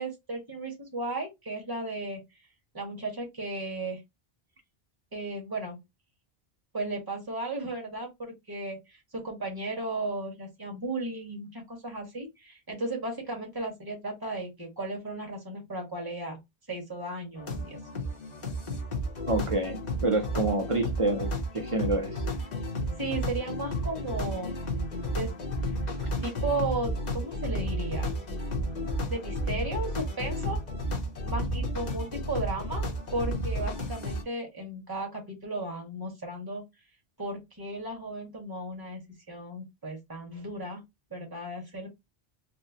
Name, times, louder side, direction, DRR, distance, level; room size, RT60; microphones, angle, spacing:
voice 1, 0.0-2.2 2.7-4.0 5.1-5.8 6.7-16.4 16.7-17.8 23.0-24.5 25.1-25.3 26.2-28.1 29.1-30.6 31.2-32.9 33.1-36.6 37.2-39.0 39.3-40.8 41.1-41.9, right 2 dB, 20° right, 1.4 m, -35 dB
sound 1, 17.4-34.2, equal, 45° left, 1.0 m, -32 dB
voice 2, 19.3-22.1, right 2 dB, 35° right, 0.7 m, -28 dB
4.1 x 2.2 x 2.8 m
omnidirectional pair, 1.1 m